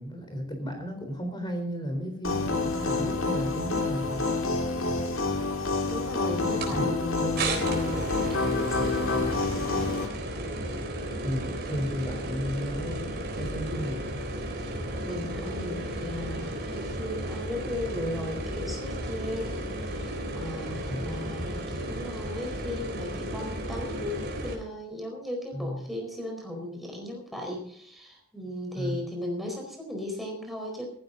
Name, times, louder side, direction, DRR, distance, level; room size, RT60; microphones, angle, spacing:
voice 1, 0.0-4.3 6.5-6.9 7.2-7.3 11.2-14.0 20.9-21.3 25.5-25.9 28.8-29.1, equal, 20° left, 4 dB, 3.9 m, -34 dB
sound 1, 2.2-10.1, left 3 dB, 65° left, 2.2 m, -28 dB
voice 2, 5.8-9.5 14.7-30.9, left 1 dB, ahead, 1 dB, 4.5 m, -36 dB
sound 2, 6.6-6.7 7.4-24.6, right 1 dB, 45° right, 3.8 m, -34 dB
15.5 x 15.0 x 4.0 m, 0.66 s
head